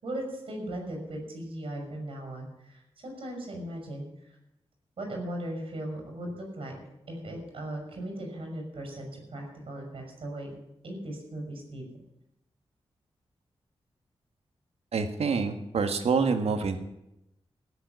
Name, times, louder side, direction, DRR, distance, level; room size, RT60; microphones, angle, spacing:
voice 1, 0.0-4.4 5.0-6.8 7.1-10.5 10.8-11.9, right 1 dB, 60° right, 2 dB, 6.2 m, -38 dB
voice 2, 14.9-16.8, right 5 dB, 85° right, 7 dB, 1.6 m, -26 dB
16.5 x 7.5 x 9.7 m, 0.85 s
wide cardioid pair, 160°, 10 cm